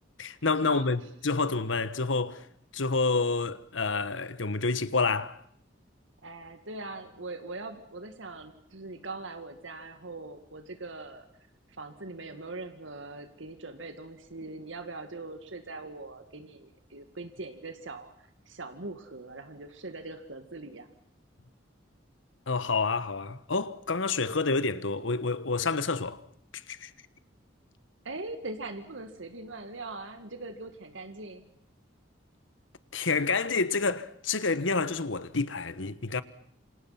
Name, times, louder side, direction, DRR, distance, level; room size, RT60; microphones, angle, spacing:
voice 1, 0.2-2.4 2.7-5.4 22.5-26.2 26.5-26.9 32.9-36.2, left 4 dB, 85° left, 1.4 m, -28 dB
voice 2, 6.2-11.3 11.8-20.9 28.0-31.5, right 2 dB, 90° right, 2.1 m, -41 dB
28.0 x 26.5 x 5.9 m
head